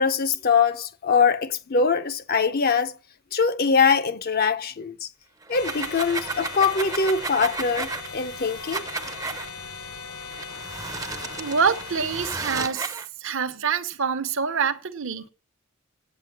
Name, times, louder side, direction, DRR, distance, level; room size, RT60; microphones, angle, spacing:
voice 1, 0.0-2.9 3.3-5.1 5.5-8.9, left 5 dB, 45° left, 0.6 m, -23 dB
sound 1, 5.4-9.5 10.3-13.1, right 3 dB, 15° right, 0.6 m, -33 dB
sound 2, 5.5-12.4, left 5 dB, 75° left, 1.5 m, -39 dB
voice 2, 11.4-12.9 13.2-15.3, right 6 dB, 60° right, 0.9 m, -26 dB
8.6 x 8.1 x 7.3 m
head